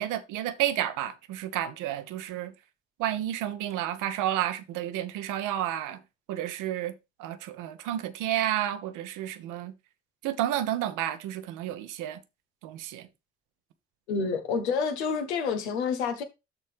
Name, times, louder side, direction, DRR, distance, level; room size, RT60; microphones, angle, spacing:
voice 1, 0.0-2.5 3.0-6.0 6.3-6.9 7.2-9.7 10.2-12.2 12.6-13.1, right 12 dB, 70° right, 1.1 m, -31 dB
voice 2, 14.1-16.2, left 5 dB, 80° left, 1.3 m, -28 dB
12.5 x 4.2 x 3.5 m
figure-of-eight pair, 45°, 33 cm